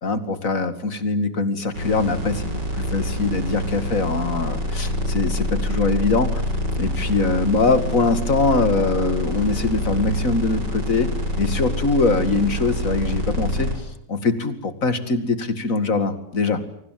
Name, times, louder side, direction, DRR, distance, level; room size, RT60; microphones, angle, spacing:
voice 1, 0.0-6.4 6.8-11.1 11.4-13.7 14.1-16.6, left 3 dB, 45° left, 11 dB, 2.6 m, -22 dB
sound 1, 1.7-13.7, equal, 70° right, 7.5 m, -26 dB
30.0 x 24.0 x 7.7 m, 0.71 s
omnidirectional pair, 1.9 m